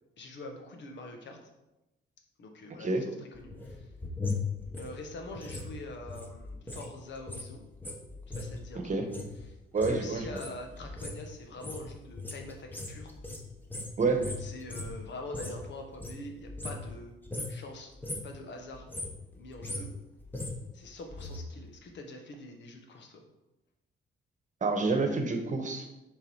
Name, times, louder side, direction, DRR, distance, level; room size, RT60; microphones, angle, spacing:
voice 1, 0.2-1.4 2.4-3.9 4.8-7.6 8.3-9.0 9.4-9.6 9.8-13.1 14.0-17.1 17.5-17.9 18.2-18.9 19.4-19.9 20.7-23.2, left 2 dB, 65° left, 3 dB, 1.3 m, -44 dB
sound 1, 3.3-6.9 7.1-15.6 15.9-17.0 17.2-17.6 17.9-18.4 18.7-21.4 21.7-21.8, left 3 dB, 10° left, 1.1 m, -39 dB
voice 2, 8.7-9.1 9.7-10.2 14.0-14.2 24.6-25.9, right 3 dB, 40° right, 5 dB, 1.1 m, -28 dB
6.6 x 4.0 x 4.7 m, 0.96 s
cardioid pair, 90°, 20 cm